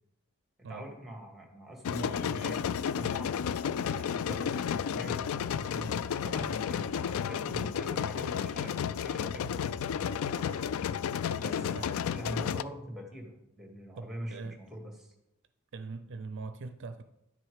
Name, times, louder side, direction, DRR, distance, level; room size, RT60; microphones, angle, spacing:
voice 1, 0.7-3.3 3.9-9.8 11.3-11.8 12.1-15.1, equal, ahead, 1.9 m, -43 dB
sound 1, 1.9-12.6, left 8 dB, 75° left, 0.3 m, -32 dB
sound 2, 5.5-8.9 10.0-10.6, equal, 35° left, 2.3 m, -54 dB
voice 2, 14.0-14.6 15.7-17.0, right 4 dB, 60° right, 0.5 m, -42 dB
11.0 x 6.2 x 4.8 m
head